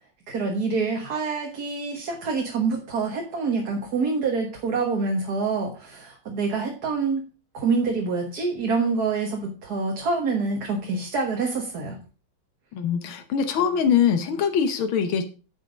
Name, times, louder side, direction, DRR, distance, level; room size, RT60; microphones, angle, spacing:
voice 1, 0.3-7.3 7.5-12.0, right 4 dB, 50° right, 1 dB, 1.9 m, -26 dB
voice 2, 12.7-15.3, left 7 dB, 85° left, 8 dB, 1.8 m, -23 dB
9.7 x 6.3 x 5.1 m, 0.35 s
omnidirectional pair, 2.2 m